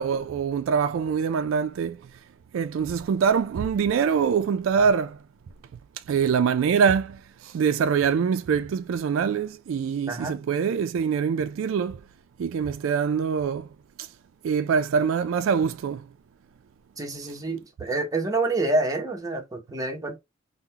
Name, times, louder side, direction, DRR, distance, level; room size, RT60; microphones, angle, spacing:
voice 1, 0.0-2.0 2.5-5.2 6.1-12.0 12.4-13.7 14.0-14.1 14.4-16.1, right 6 dB, 75° right, 0.3 m, -24 dB
voice 2, 10.1-10.4 17.0-20.2, right 2 dB, 15° right, 0.7 m, -27 dB
3.7 x 2.1 x 2.7 m
head